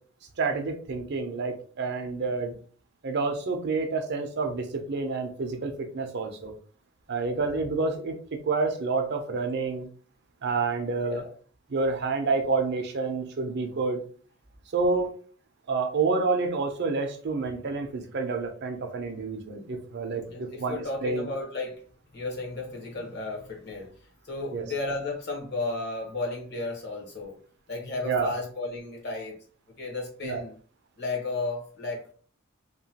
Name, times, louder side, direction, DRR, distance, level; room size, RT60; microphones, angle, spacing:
voice 1, 0.4-2.5 3.0-6.5 7.1-9.9 10.4-11.2 11.7-14.0 14.7-15.1 15.7-21.3 24.5-24.7 28.0-28.3 30.2-30.4, right 4 dB, 50° right, 5 dB, 0.5 m, -28 dB
voice 2, 11.0-11.3 20.3-21.8 22.1-23.9 24.2-27.4 27.7-29.3 29.8-30.5 31.0-32.1, left 3 dB, 50° left, -1 dB, 1.0 m, -33 dB
2.8 x 2.2 x 2.7 m, 0.42 s
head